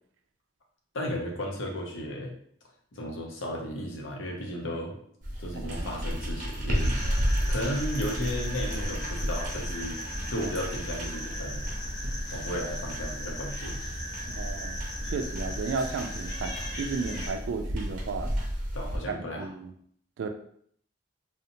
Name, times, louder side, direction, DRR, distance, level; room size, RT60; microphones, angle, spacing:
voice 1, 0.9-2.3 2.9-5.0 5.4-6.9 7.5-10.0 10.3-11.7 12.3-13.8 18.7-19.5, equal, 85° left, 0 dB, 0.6 m, -34 dB
sound 1, 5.2-19.0, equal, 45° right, 0.6 m, -33 dB
voice 2, 5.6-5.9 14.3-14.8 15.1-18.3 19.3-19.7 20.2-20.3, right 4 dB, 80° right, 6 dB, 0.3 m, -34 dB
sound 2, 6.7-17.3, equal, 20° left, 0.6 m, -38 dB
2.7 x 2.1 x 2.6 m, 0.64 s
head